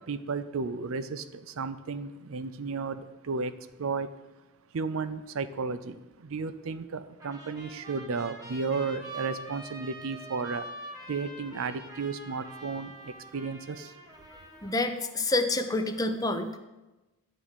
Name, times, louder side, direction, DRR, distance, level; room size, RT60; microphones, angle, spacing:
voice 1, 0.0-3.5 3.8-4.1 4.7-10.7 11.1-13.9, right 4 dB, 65° right, 0.5 m, -33 dB
Trumpet, 7.2-14.9, right 1 dB, 15° right, 1.2 m, -45 dB
voice 2, 14.6-16.6, left 2 dB, 15° left, 0.6 m, -28 dB
11.0 x 3.7 x 7.2 m
head